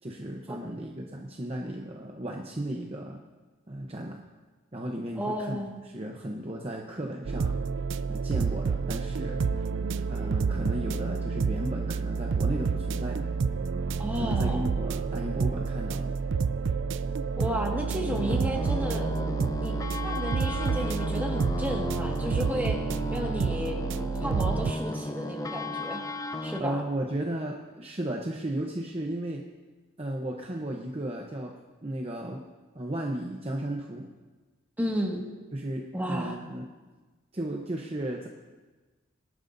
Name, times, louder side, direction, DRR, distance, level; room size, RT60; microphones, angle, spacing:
voice 1, 0.0-3.2 3.7-4.2 4.7-7.5 8.1-9.4 10.1-13.3 14.2-16.2 26.6-29.4 30.0-31.5 31.8-32.4 32.7-34.1 35.5-36.7 37.3-38.3, right 1 dB, 30° right, 0 dB, 0.9 m, -34 dB
voice 2, 5.2-5.8 14.0-14.7 17.4-19.1 19.6-19.7 20.0-22.8 23.1-23.8 24.2-26.0 26.4-26.8 34.8-35.2 35.9-36.4, equal, 10° right, -1 dB, 1.8 m, -32 dB
sound 1, 7.2-24.7, right 5 dB, 60° right, 0.4 m, -29 dB
sound 2, 18.1-26.6, left 1 dB, 15° left, 0.5 m, -34 dB
23.5 x 11.5 x 2.7 m, 1.3 s
head